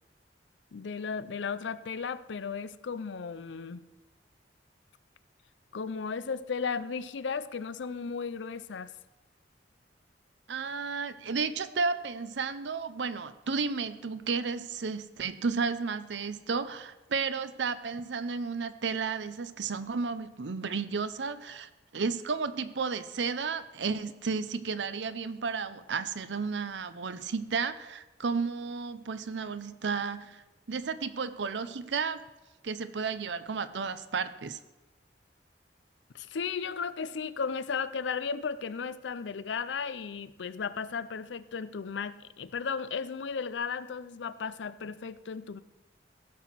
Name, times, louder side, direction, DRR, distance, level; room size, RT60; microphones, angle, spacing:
voice 1, 0.7-3.8 5.7-8.9 36.1-45.6, left 5 dB, 90° left, 16 dB, 0.5 m, -35 dB
voice 2, 10.5-32.2 32.6-34.6, right 5 dB, 80° right, 12 dB, 0.6 m, -33 dB
16.0 x 5.9 x 6.0 m, 1.1 s
head